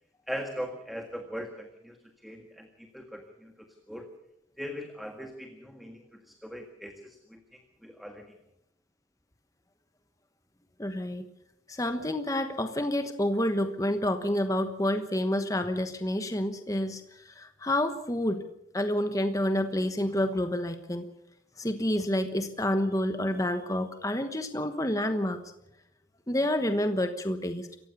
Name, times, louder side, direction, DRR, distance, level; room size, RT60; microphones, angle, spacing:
voice 1, 0.3-2.0 2.2-4.1 4.6-8.3, equal, ahead, 4 dB, 1.7 m, -40 dB
voice 2, 10.8-11.3 11.7-18.4 18.7-21.1 21.6-25.4 26.3-27.7, left 1 dB, 15° left, 8 dB, 1.1 m, -29 dB
27.5 x 15.5 x 6.9 m, 0.79 s
head